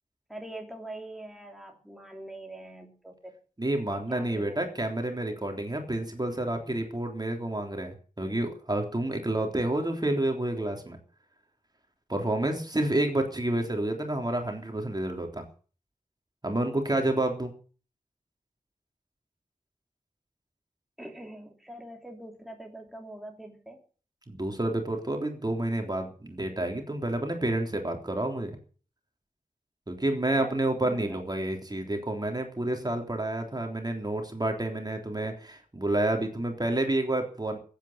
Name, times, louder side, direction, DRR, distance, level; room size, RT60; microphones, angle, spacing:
voice 1, 0.3-3.3 3.8-4.6 21.0-23.8 30.3-30.5 30.8-31.2, right 1 dB, ahead, 2 dB, 3.1 m, -44 dB
voice 2, 3.6-11.0 12.1-15.4 16.4-17.5 24.3-28.6 29.9-37.6, right 1 dB, 30° right, 3 dB, 3.6 m, -29 dB
15.5 x 9.2 x 8.7 m, 0.41 s
wide cardioid pair, 75°, 14 cm